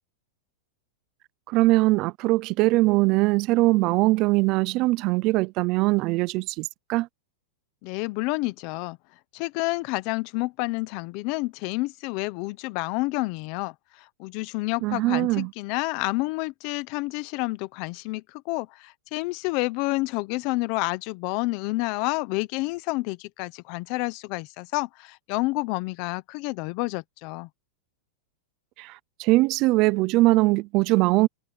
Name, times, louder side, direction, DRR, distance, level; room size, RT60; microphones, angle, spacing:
voice 1, 1.5-7.1 14.8-15.5 28.8-31.3, right 20 dB, 35° right, 0.5 m, -21 dB
voice 2, 7.8-9.0 9.3-27.5, left 23 dB, 40° left, 0.9 m, -29 dB
supercardioid pair, 165°, 0 cm